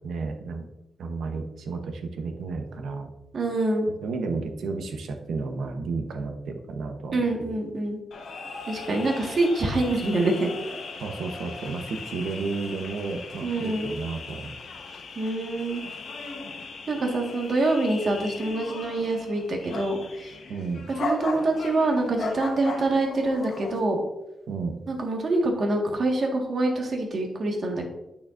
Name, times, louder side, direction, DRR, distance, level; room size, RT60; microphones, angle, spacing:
voice 1, 0.0-0.7 1.0-3.1 4.0-7.5 11.0-14.5 20.5-20.8 24.5-24.8, right 4 dB, 80° right, 5 dB, 0.9 m, -32 dB
voice 2, 3.3-3.9 7.1-8.0 8.7-10.5 13.4-13.9 15.1-15.8 16.9-20.0 20.2-20.3 21.0-24.0 24.9-27.9, right 2 dB, 50° right, 1 dB, 1.6 m, -25 dB
sound 1, 8.1-23.8, left 3 dB, 65° left, 1.1 m, -38 dB
8.7 x 6.6 x 2.6 m, 0.91 s
cardioid pair, 110°, 0 cm